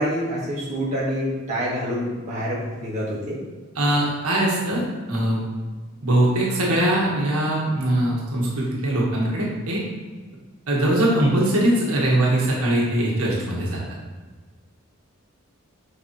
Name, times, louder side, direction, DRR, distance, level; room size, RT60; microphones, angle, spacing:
voice 1, 0.0-3.4, equal, 30° right, -8 dB, 1.9 m, -26 dB
voice 2, 3.7-4.8 5.1-5.4 6.0-9.8 10.7-13.8, right 1 dB, 90° right, -4 dB, 1.6 m, -21 dB
7.4 x 4.6 x 3.1 m, 1.3 s
head